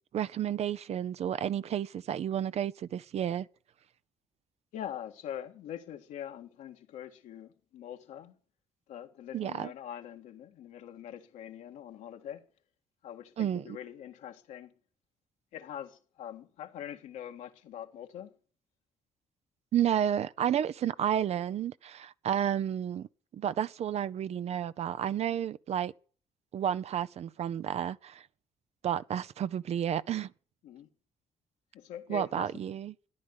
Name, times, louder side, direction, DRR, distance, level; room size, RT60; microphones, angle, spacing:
voice 1, 0.1-3.5 9.3-9.7 13.4-13.8 19.7-23.1 23.3-25.9 26.5-28.2 28.8-30.3 32.1-32.9, right 10 dB, 60° right, 0.7 m, -31 dB
voice 2, 4.7-8.4 8.9-12.5 13.0-14.7 15.5-18.4 30.6-30.9 31.7-32.5, left 10 dB, 80° left, 1.8 m, -43 dB
13.5 x 10.5 x 6.5 m
supercardioid pair, 70°, 12 cm